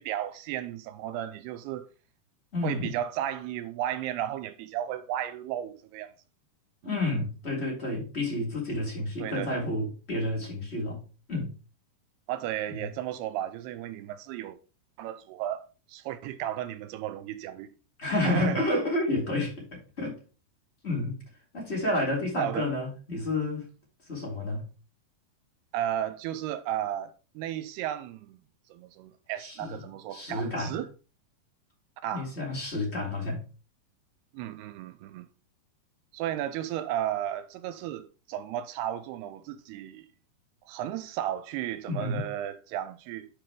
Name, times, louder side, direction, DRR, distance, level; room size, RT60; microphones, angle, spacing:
voice 1, 0.0-1.9 2.6-6.1 6.8-7.0 9.2-9.7 12.3-14.6 15.0-17.7 18.2-18.6 22.4-22.7 25.7-28.4 28.7-30.9 32.0-32.3 34.3-35.3 36.1-40.1 40.7-43.3, right 12 dB, 85° right, 2.7 m, -34 dB
voice 2, 2.5-2.9 6.8-11.0 11.3-11.5 12.8-12.9 18.0-20.1 20.8-21.2 21.5-23.7 24.1-24.7 29.4-29.7 30.1-30.8 32.1-33.4 41.9-42.2, left 2 dB, 15° left, 3.2 m, -30 dB
12.0 x 4.8 x 3.7 m
omnidirectional pair, 4.6 m